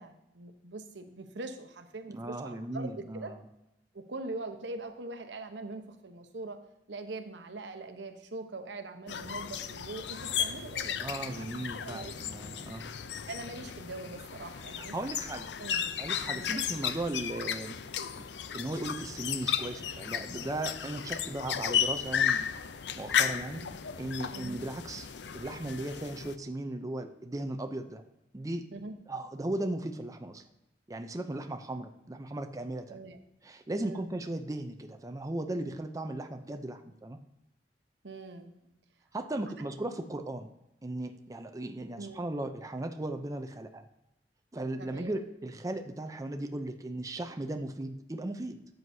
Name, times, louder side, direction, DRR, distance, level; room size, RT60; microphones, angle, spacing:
voice 1, 0.0-3.3 3.9-6.6 6.9-11.5 11.8-12.1 13.3-14.9 15.6-15.9 16.3-16.5 23.5-23.7 24.3-24.6 28.7-28.9 32.9-33.2 33.8-34.1 38.0-38.5 42.0-42.2 44.8-45.2, right 2 dB, 85° right, 7 dB, 1.0 m, -42 dB
voice 2, 2.1-3.4 11.0-13.0 14.8-15.5 16.0-17.8 18.5-22.4 22.9-23.6 24.0-25.1 25.3-28.0 28.3-28.7 29.1-30.4 30.9-33.0 33.4-37.2 39.1-40.5 40.8-43.9 44.5-48.6, right 1 dB, 20° right, 6 dB, 0.5 m, -37 dB
sound 1, 9.1-26.4, left 8 dB, 75° left, 0.5 m, -34 dB
12.5 x 7.8 x 2.7 m, 0.88 s
head